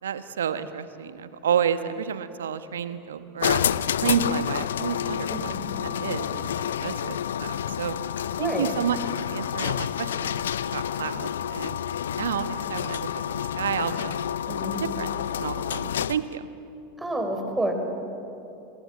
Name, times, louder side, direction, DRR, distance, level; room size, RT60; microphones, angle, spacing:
voice 1, 0.0-3.6 4.0-5.5 5.8-7.9 8.4-10.4 10.7-11.8 12.2-14.2 14.8-15.1 15.4-16.4, right 8 dB, 75° right, 11 dB, 1.2 m, -30 dB
sound 1, 3.4-16.3, left 9 dB, 75° left, 0.6 m, -29 dB
voice 2, 5.3-5.6 8.4-8.7 14.5-14.8 17.0-17.7, right 1 dB, 10° right, 4 dB, 4.9 m, -29 dB
28.0 x 21.0 x 8.3 m, 2.8 s
figure-of-eight pair, 85°, 0 cm